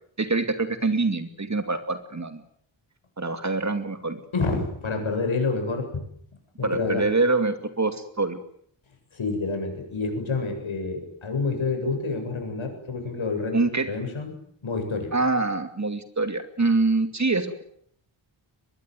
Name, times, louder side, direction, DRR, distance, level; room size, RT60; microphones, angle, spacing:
voice 1, 0.2-2.4 3.2-4.2 6.6-8.4 13.5-13.9 15.1-17.6, right 3 dB, 35° right, 8 dB, 2.6 m, -25 dB
voice 2, 4.3-6.0 6.6-7.1 9.1-14.3 14.6-15.1, left 3 dB, 70° left, 4 dB, 7.9 m, -28 dB
23.5 x 21.0 x 9.4 m, 0.66 s
wide cardioid pair, 125°, 49 cm